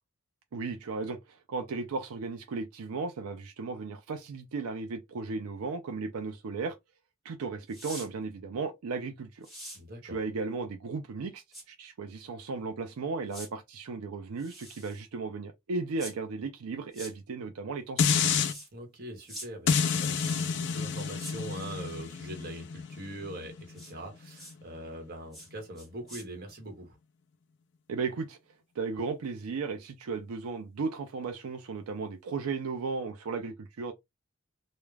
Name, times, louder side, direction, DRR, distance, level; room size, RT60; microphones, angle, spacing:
voice 1, 0.5-6.8 7.2-9.5 10.0-18.1 27.9-28.4 28.8-33.9, right 4 dB, 80° right, 0.4 m, -35 dB
sound 1, 7.7-8.1 9.4-9.8 11.5-11.6 13.3-13.5 14.4-15.0 16.0-16.1 16.9-17.1 18.5-18.7 19.3-19.5 20.1-20.6 21.2-21.4 23.8-23.9 24.3-24.5 25.3-25.5 25.8-26.2, equal, ahead, 1.1 m, -44 dB
voice 2, 9.7-10.2 18.7-27.0, right 1 dB, 45° right, 1.0 m, -42 dB
sound 2, 18.0-18.5 19.7-24.8 25.3-25.4, left 6 dB, 50° left, 0.3 m, -30 dB
2.3 x 2.1 x 3.2 m
head